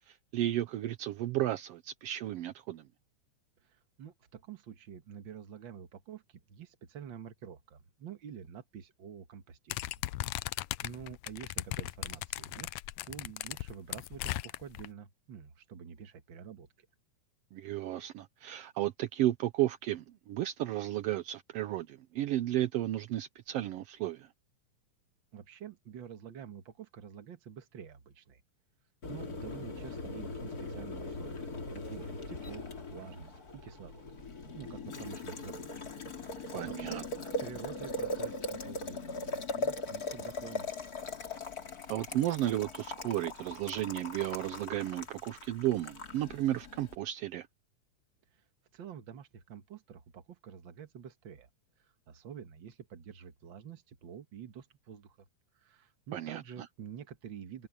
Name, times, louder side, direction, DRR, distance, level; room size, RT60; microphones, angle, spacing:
voice 1, 0.1-2.8 17.5-24.3 36.5-37.0 41.9-47.5 56.1-56.4, right 14 dB, 75° right, 1.5 m, -33 dB
voice 2, 3.6-10.0 10.4-12.7 13.0-16.9 25.3-28.4 29.1-34.1 34.5-35.7 36.2-40.9 48.7-51.5 51.8-55.3 55.5-57.7, right 8 dB, 50° right, 1.7 m, -48 dB
sound 1, 9.7-14.9, left 18 dB, 85° left, 1.5 m, -37 dB
Boiling, 29.0-47.0, left 2 dB, 30° left, 2.6 m, -40 dB
open air
omnidirectional pair, 3.5 m